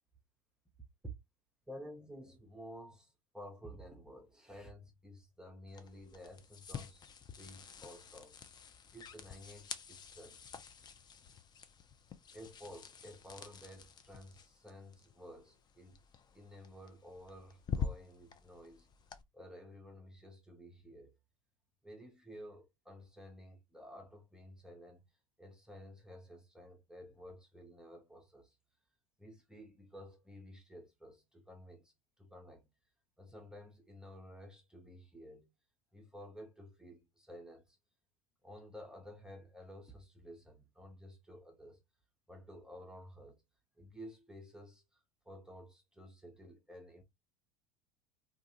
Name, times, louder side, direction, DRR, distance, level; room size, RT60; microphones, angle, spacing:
voice 1, 1.7-7.1 7.4-8.4 8.9-10.4 12.3-16.0 16.3-18.9 19.3-21.1 21.8-25.0 25.4-28.6 29.2-32.7 33.2-35.5 35.9-37.8 38.4-41.8 42.3-43.4 43.8-47.0, equal, 5° right, 0.7 m, -52 dB
sound 1, 5.7-19.2, left 6 dB, 25° left, 0.5 m, -47 dB
2.4 x 2.4 x 2.8 m
figure-of-eight pair, 75°, 18 cm